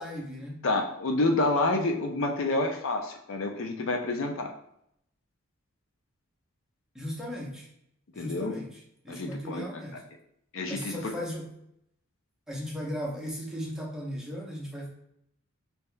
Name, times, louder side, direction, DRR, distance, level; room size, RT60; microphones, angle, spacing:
voice 1, 0.0-0.6 6.9-7.7 8.1-10.0 10.7-11.5 12.5-14.9, equal, 5° right, -4 dB, 0.8 m, -37 dB
voice 2, 0.6-4.5 8.2-8.5 9.1-9.7 10.5-11.1, left 2 dB, 65° left, 3 dB, 0.5 m, -28 dB
5.3 x 2.8 x 2.2 m, 0.73 s
head